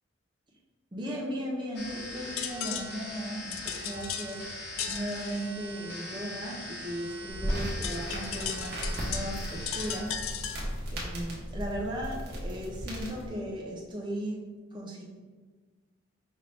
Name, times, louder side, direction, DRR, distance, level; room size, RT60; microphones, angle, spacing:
voice 1, 0.9-4.4 4.9-10.5 10.9-14.5 14.7-15.0, equal, 20° right, -3 dB, 0.6 m, -37 dB
sound 1, 1.7-10.0, left 1 dB, 50° left, 0.8 m, -42 dB
sound 2, 1.8-11.0, left 8 dB, 85° left, 0.4 m, -39 dB
sound 3, 7.3-13.3, equal, 50° right, 1.0 m, -36 dB
5.3 x 2.7 x 3.4 m, 1.4 s
head